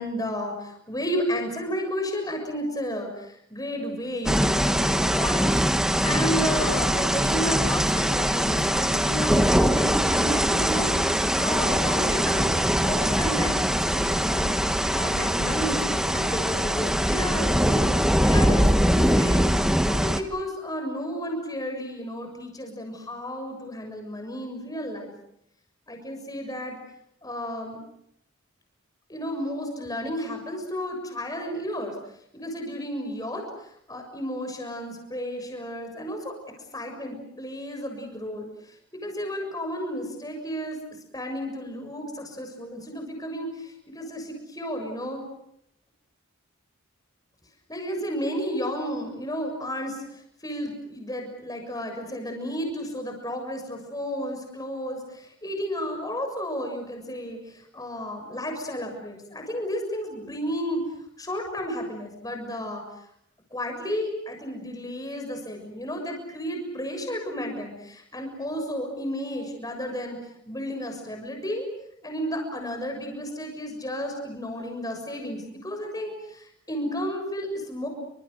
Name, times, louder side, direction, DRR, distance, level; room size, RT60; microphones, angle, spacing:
voice 1, 0.0-5.6 6.0-12.4 12.8-17.8 18.2-19.5 19.8-25.1 25.9-26.8 27.2-27.8 29.1-32.0 32.3-36.3 36.7-38.8 39.0-40.8 41.1-45.2 47.7-60.8 61.2-62.8 63.5-71.7 72.0-77.9, equal, 15° left, 3 dB, 6.9 m, -32 dB
sound 1, 4.3-20.2, equal, 5° right, 1.3 m, -22 dB
29.5 x 26.5 x 6.6 m, 0.74 s
head